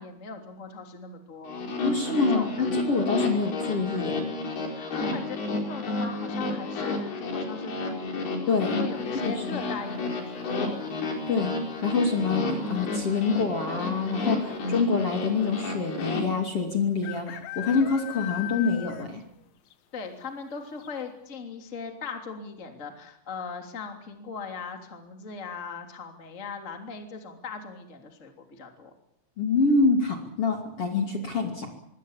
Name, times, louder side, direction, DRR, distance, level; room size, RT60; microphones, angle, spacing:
voice 1, 0.0-1.7 2.1-2.5 4.7-8.3 8.6-10.7 19.9-28.9, left 5 dB, 20° left, 4 dB, 2.7 m, -39 dB
sound 1, 1.5-16.2, left 3 dB, 60° left, 6.6 m, -31 dB
voice 2, 1.8-4.3 8.5-8.8 9.2-9.6 11.3-11.5 11.8-19.2 29.4-31.7, left 4 dB, 35° left, 3 dB, 3.2 m, -26 dB
sound 2, 9.5-10.0 11.8-12.2 12.4-12.5 12.7-13.3 14.0-14.1 14.4-14.5 16.0-16.1 17.0-19.3 19.7-19.8 20.3-20.4 20.8-20.9, left 16 dB, 90° left, 3.9 m, -39 dB
25.5 x 23.5 x 7.5 m, 0.75 s
omnidirectional pair, 5.2 m